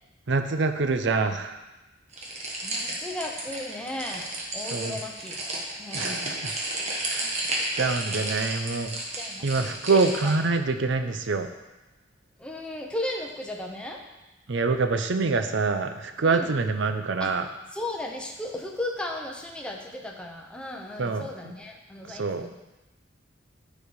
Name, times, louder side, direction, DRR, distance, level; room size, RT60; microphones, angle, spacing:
voice 1, 0.3-1.6 4.7-5.0 5.9-6.5 7.1-7.4 7.7-8.9 9.4-11.5 14.5-17.4 21.0-21.2 22.1-22.5, right 4 dB, 65° right, 8 dB, 0.6 m, -25 dB
sound 1, 2.1-10.3, right 1 dB, 35° right, 1.3 m, -32 dB
voice 2, 2.6-5.4 5.8-6.3 7.2-7.7 8.1-8.3 9.0-10.4 12.4-14.0 16.2-16.5 17.2-17.3 17.7-22.5, left 1 dB, 5° left, 0 dB, 0.8 m, -36 dB
9.8 x 4.2 x 4.7 m, 1.0 s
head